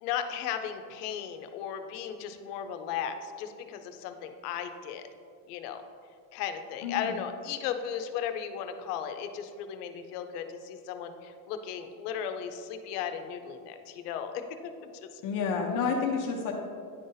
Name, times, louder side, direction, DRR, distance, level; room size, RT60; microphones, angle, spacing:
voice 1, 0.0-5.0 5.5-5.8 6.3-14.7 15.0-15.2, left 8 dB, 90° left, 7 dB, 0.7 m, -36 dB
voice 2, 6.8-7.2 15.2-16.5, left 5 dB, 45° left, 0 dB, 0.6 m, -29 dB
10.0 x 3.9 x 2.6 m, 2.3 s
cardioid pair, 160°, 45 cm